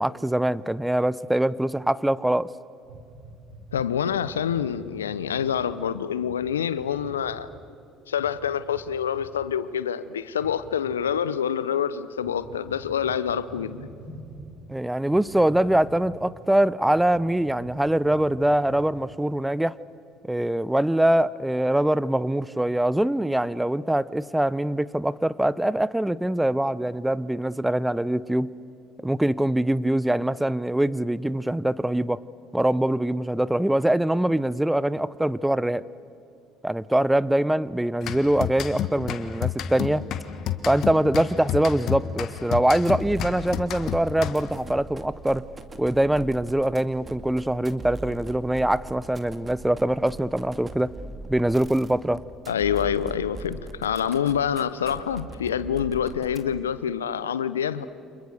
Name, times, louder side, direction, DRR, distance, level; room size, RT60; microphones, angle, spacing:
voice 1, 0.0-2.5 14.7-19.7 20.3-28.5 29.0-32.2 32.5-35.8 36.6-40.0 40.7-45.4 45.8-51.0 51.3-52.2, right 1 dB, 5° right, 19 dB, 0.7 m, -23 dB
sound 1, 2.8-5.7 6.2-6.3 6.7-7.4 8.1-8.3 8.6-8.8 9.1-9.3 10.3-10.9 12.1-14.4 15.0-16.4 16.8-17.0 17.3-19.0, right 1 dB, 80° right, 5.0 m, -45 dB
voice 2, 3.7-7.5 8.1-13.9 52.5-57.8, left 8 dB, 85° left, 15 dB, 0.7 m, -26 dB
sound 2, 38.0-44.7, left 9 dB, 55° left, 1.6 m, -31 dB
sound 3, 42.8-56.8, right 3 dB, 25° right, 2.4 m, -41 dB
30.0 x 27.5 x 6.7 m, 2.6 s
hypercardioid pair, 60°, 0 cm